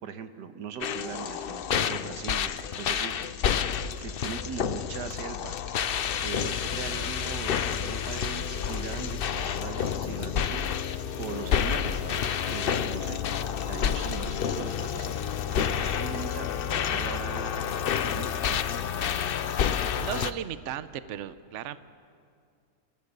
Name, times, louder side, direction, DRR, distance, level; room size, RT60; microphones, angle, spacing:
voice 1, 0.0-3.2 4.0-5.6 6.2-10.6 11.2-13.2 13.7-15.2 15.5-17.7 18.0-18.6, right 7 dB, 85° right, 9 dB, 1.6 m, -40 dB
sound 1, 0.8-20.3, left 8 dB, 90° left, 0.5 m, -29 dB
voice 2, 20.0-21.8, right 10 dB, 55° right, 13 dB, 0.9 m, -35 dB
28.5 x 16.0 x 6.7 m, 2.3 s
omnidirectional pair, 1.8 m